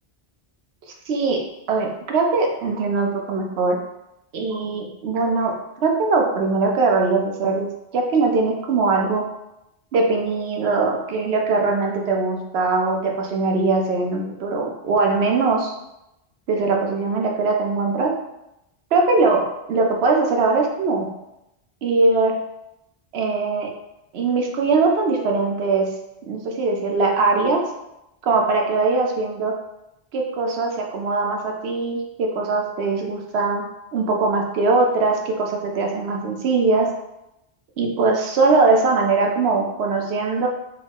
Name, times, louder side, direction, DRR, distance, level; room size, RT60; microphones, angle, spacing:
voice 1, 1.1-1.4 1.7-3.8 4.3-5.5 5.8-7.7 7.9-9.2 9.9-15.7 16.5-18.1 18.9-21.1 21.8-22.4 23.1-23.7 24.1-25.9 26.2-27.6 28.2-29.5 30.1-33.6 33.9-36.9 37.8-40.5, right 3 dB, 85° right, 1 dB, 0.9 m, -21 dB
4.6 x 2.0 x 3.5 m, 0.87 s
omnidirectional pair, 1.0 m